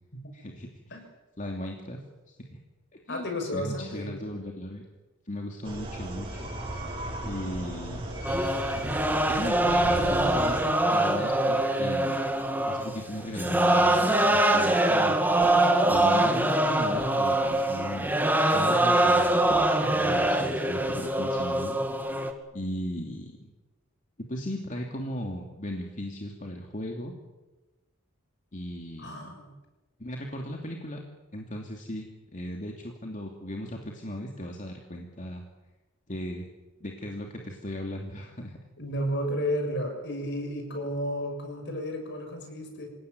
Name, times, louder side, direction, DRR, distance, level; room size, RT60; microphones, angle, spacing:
voice 1, 0.3-0.9 1.4-2.0 2.3-2.6 3.1-4.8 5.3-6.5 7.2-8.0 9.3-12.2 12.7-18.1 18.5-19.5 19.8-21.8 22.5-23.5 24.3-27.1 28.5-29.3 30.0-31.0 31.3-35.4 36.1-36.4 36.8-38.6, equal, 40° left, 1 dB, 2.7 m, -37 dB
voice 2, 3.1-4.2 18.7-19.0 19.8-20.2 29.0-29.5 38.8-42.9, equal, 55° left, 4 dB, 6.9 m, -33 dB
sound 1, 5.6-10.6, right 1 dB, 25° right, 6.9 m, -36 dB
sound 2, 8.2-22.3, right 1 dB, 10° right, 2.1 m, -24 dB
27.0 x 17.5 x 9.6 m, 1.1 s
head